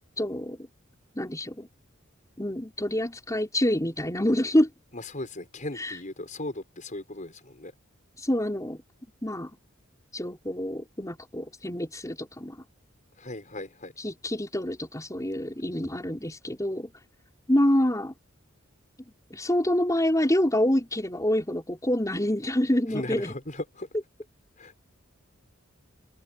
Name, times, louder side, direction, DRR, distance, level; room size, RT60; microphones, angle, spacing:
voice 1, 0.2-0.6 1.2-1.7 2.4-4.7 5.8-6.0 8.2-8.8 9.2-9.5 10.1-12.6 14.0-16.9 17.5-18.1 19.3-23.3, left 1 dB, 15° left, 5.3 m, -26 dB
voice 2, 4.9-7.7 13.2-13.9 22.9-23.9 24.6-24.7, left 1 dB, 40° left, 6.6 m, -37 dB
head